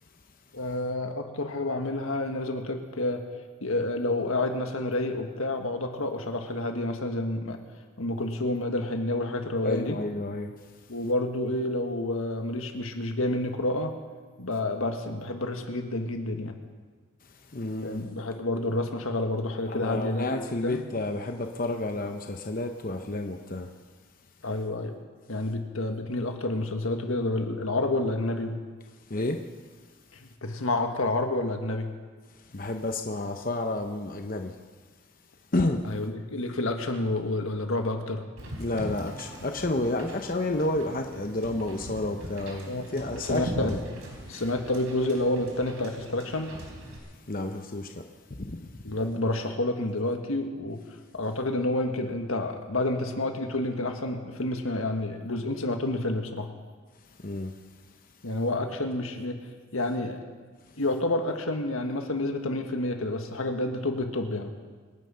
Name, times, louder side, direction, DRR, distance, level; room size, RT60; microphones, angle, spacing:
voice 1, 0.5-3.3 3.6-7.6 8.0-10.0 10.9-13.9 14.4-16.6 17.8-20.8 24.4-25.0 25.3-28.6 30.2-31.9 35.8-38.3 42.7-42.8 43.1-43.7 44.3-46.6 48.8-50.8 51.1-56.5 58.2-59.4 59.7-60.2 60.8-64.5, left 2 dB, 85° left, 5 dB, 1.7 m, -29 dB
voice 2, 9.6-10.5 17.2-18.0 19.7-23.7 29.1-29.4 32.3-34.6 35.5-35.8 38.6-43.8 44.3-44.4 47.0-49.0 57.0-57.6 60.7-60.8, left 2 dB, 40° left, 4 dB, 0.9 m, -31 dB
Wind / Boat Water vehicle, 38.4-47.0, right 1 dB, 90° right, 3.8 m, -40 dB
25.5 x 10.0 x 5.7 m, 1.5 s
head